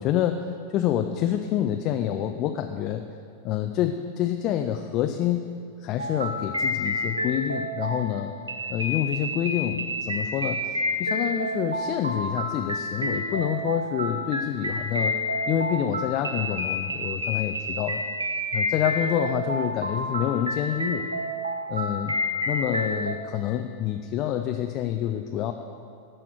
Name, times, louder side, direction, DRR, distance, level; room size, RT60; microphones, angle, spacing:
voice 1, 0.0-3.0 3.4-5.5 5.8-8.3 8.7-15.2 15.5-18.0 18.5-21.1 21.7-22.1 22.5-25.5, left 11 dB, 40° left, 6 dB, 0.5 m, -27 dB
sound 1, 6.0-23.1, left 1 dB, 80° right, 0.7 m, -29 dB
12.5 x 4.5 x 7.8 m, 2.3 s
figure-of-eight pair, 90°, 0 cm